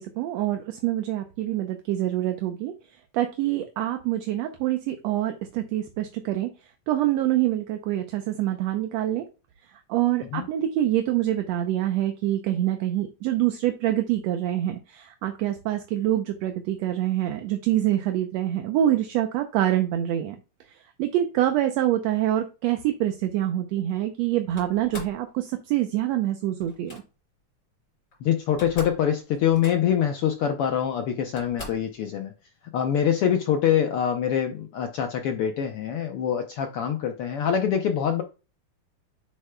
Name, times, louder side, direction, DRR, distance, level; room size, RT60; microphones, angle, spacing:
voice 1, 0.0-2.7 3.1-6.5 6.9-9.3 9.9-20.4 21.0-27.0, right 13 dB, 75° right, 6 dB, 1.7 m, -25 dB
Slam, 24.6-25.2 26.6-27.0 28.1-28.2 28.4-29.0 29.3-30.0 30.8-30.9 31.4-31.9, left 2 dB, 35° left, 3.8 m, -41 dB
voice 2, 28.2-32.3 32.7-38.2, left 9 dB, 85° left, 5 dB, 1.2 m, -24 dB
8.9 x 6.6 x 2.2 m, 0.31 s
omnidirectional pair, 3.5 m